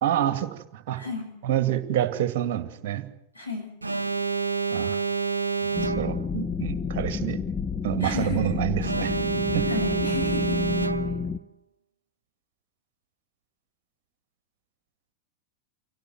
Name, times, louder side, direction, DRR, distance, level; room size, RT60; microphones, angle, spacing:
voice 1, 0.0-1.0 1.4-3.0 4.7-5.0 5.6-7.4 7.8-9.2 9.5-9.7, right 12 dB, 50° right, 9 dB, 2.2 m, -27 dB
voice 2, 1.0-1.3 3.3-3.7 8.0-8.6 9.7-10.6, left 3 dB, 90° left, 0 dB, 7.1 m, -32 dB
Alarm, 3.8-6.4 8.8-11.4, right 5 dB, 80° right, 0.8 m, -28 dB
sound 1, 5.7-11.4, left 5 dB, 15° left, 0.9 m, -30 dB
25.5 x 17.0 x 7.8 m, 0.80 s
figure-of-eight pair, 90°, 0 cm